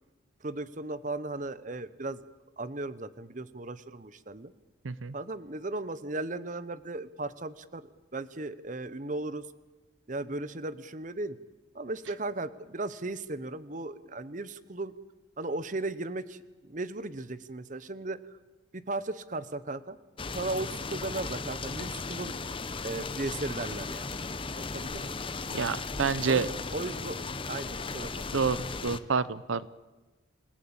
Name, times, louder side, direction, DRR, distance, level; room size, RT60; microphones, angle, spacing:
voice 1, 0.4-2.2 2.6-4.5 5.1-9.5 10.1-11.4 11.7-14.9 15.4-18.4 18.7-20.0 20.3-22.4 22.8-24.1 24.5-25.2 26.3-28.2, right 2 dB, 40° right, 15 dB, 0.9 m, -36 dB
sound 1, 20.2-29.0, left 4 dB, 25° left, 0.9 m, -36 dB
voice 2, 25.5-26.5 28.3-28.6 28.8-29.7, right 5 dB, 85° right, 17 dB, 0.7 m, -28 dB
27.5 x 17.5 x 8.7 m, 1.2 s
head